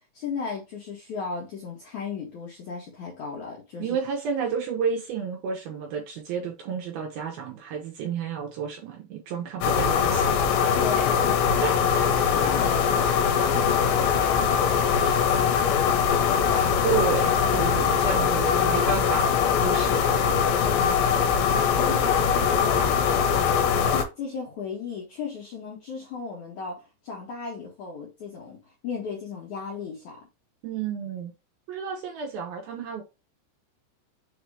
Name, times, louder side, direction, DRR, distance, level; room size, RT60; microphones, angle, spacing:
voice 1, 0.1-4.0 10.7-11.7 11.9-12.9 13.2-16.8 18.0-18.2 20.6-21.0 21.5-23.3 23.9-30.2, left 5 dB, 65° left, 2.1 m, -36 dB
voice 2, 3.8-10.3 11.6-11.7 16.8-19.3 19.6-20.1 30.6-31.3 31.7-33.0, right 6 dB, 70° right, 2.7 m, -31 dB
sound 1, 9.6-24.0, left 7 dB, 85° left, 3.2 m, -22 dB
6.8 x 3.0 x 4.8 m
omnidirectional pair, 5.2 m